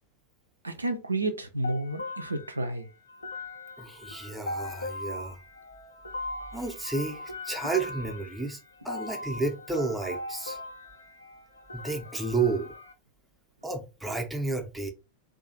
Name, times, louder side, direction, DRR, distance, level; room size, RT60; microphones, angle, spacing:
voice 1, 0.6-2.9, right 2 dB, 80° right, 0.3 m, -31 dB
sound 1, 1.6-12.9, left 2 dB, 75° left, 0.4 m, -40 dB
voice 2, 3.8-5.4 6.5-8.6 8.8-10.6 11.7-12.7 13.6-14.9, right 3 dB, 5° right, 0.5 m, -31 dB
2.4 x 2.3 x 2.6 m
figure-of-eight pair, 90°, 0 cm